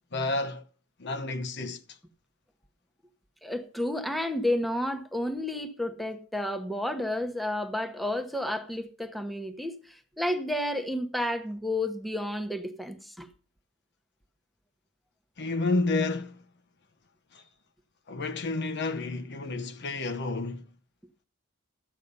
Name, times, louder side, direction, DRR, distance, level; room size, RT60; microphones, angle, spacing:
voice 1, 0.1-0.6 1.0-1.8 15.4-16.4 17.3-17.4 18.1-20.7, left 3 dB, 55° left, 0.9 m, -30 dB
voice 2, 3.4-13.3, left 1 dB, ahead, 1.0 m, -31 dB
13.0 x 8.3 x 5.4 m
head